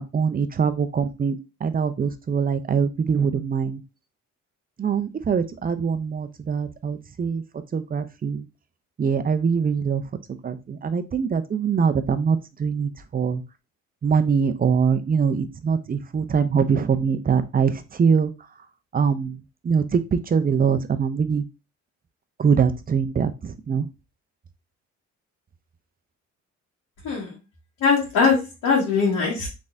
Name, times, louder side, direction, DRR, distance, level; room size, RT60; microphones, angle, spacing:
voice 1, 0.0-3.8 4.8-7.4 7.7-8.5 9.0-10.0 10.4-13.4 14.0-18.3 18.9-19.4 19.6-21.4 22.4-23.9, right 6 dB, 30° right, 10 dB, 0.5 m, -23 dB
voice 2, 27.0-27.4 27.8-29.5, left 5 dB, 80° left, -6 dB, 1.8 m, -21 dB
4.0 x 3.5 x 2.6 m, 0.27 s
cardioid pair, 90°, 30 cm